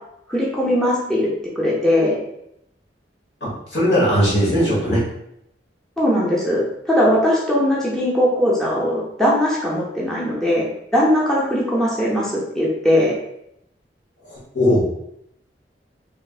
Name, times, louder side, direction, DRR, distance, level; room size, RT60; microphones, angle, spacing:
voice 1, 0.3-1.3 1.6-2.2 6.0-6.6 6.9-13.1, equal, 5° left, -6 dB, 0.5 m, -19 dB
voice 2, 3.4-5.0 14.3-14.9, equal, 70° left, -6 dB, 1.3 m, -19 dB
3.1 x 2.5 x 2.4 m, 0.78 s
head